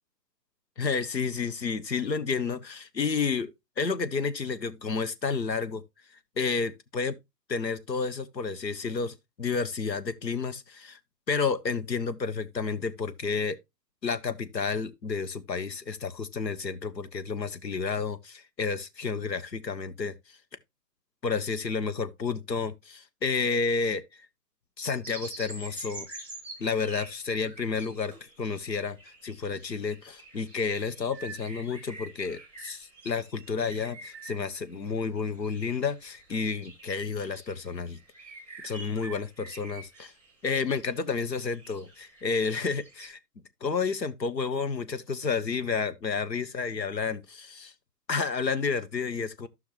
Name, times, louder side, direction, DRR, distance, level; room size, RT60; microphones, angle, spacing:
voice 1, 0.8-5.8 6.4-7.2 7.5-11.0 11.3-13.6 14.0-20.1 21.2-24.0 24.8-26.1 26.6-28.1 28.4-29.0 29.2-38.0 38.6-40.1 40.4-43.2 43.6-47.7 48.1-49.5, left 5 dB, 85° left, 1.2 m, -30 dB
sound 1, 25.0-40.4 40.9-43.1, right 2 dB, 5° left, 4.1 m, -47 dB
14.5 x 5.7 x 2.9 m
figure-of-eight pair, 125°, 49 cm